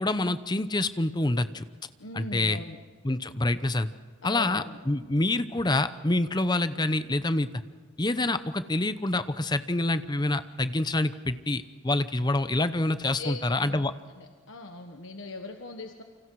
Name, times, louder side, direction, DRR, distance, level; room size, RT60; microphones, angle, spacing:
voice 1, 0.0-1.6 2.1-2.6 3.0-3.9 4.2-7.5 8.0-13.9, left 2 dB, 20° left, 12 dB, 0.8 m, -27 dB
voice 2, 2.0-2.8 4.2-4.8 13.2-16.0, left 2 dB, 65° left, 4 dB, 1.4 m, -40 dB
29.0 x 25.5 x 4.8 m, 1.5 s
head